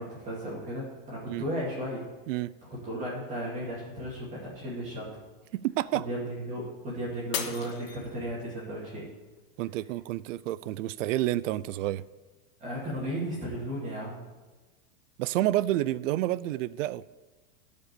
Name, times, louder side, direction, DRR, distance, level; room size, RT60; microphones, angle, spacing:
voice 1, 0.0-2.1 2.7-5.1 5.9-9.1 12.6-14.2, equal, 20° right, 2.4 m, -35 dB
voice 2, 5.5-6.0 9.6-12.0 15.2-17.0, right 15 dB, 70° right, 0.5 m, -29 dB
Shatter, 7.3-8.6 9.1-9.6 10.1-10.2, left 7 dB, 80° left, 1.8 m, -36 dB
13.0 x 5.2 x 6.8 m
supercardioid pair, 175°, 39 cm